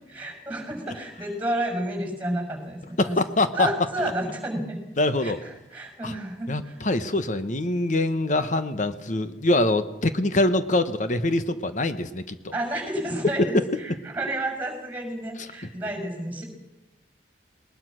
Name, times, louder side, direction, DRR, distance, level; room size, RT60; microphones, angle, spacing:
voice 1, 0.1-3.2 3.5-4.8 5.2-6.8 12.5-16.4, right 1 dB, 10° right, 4 dB, 6.0 m, -31 dB
voice 2, 3.0-3.7 5.0-5.4 6.0-6.1 6.5-12.4 13.5-13.6, left 2 dB, 45° left, 10 dB, 1.1 m, -24 dB
20.5 x 20.0 x 6.3 m, 1.0 s
head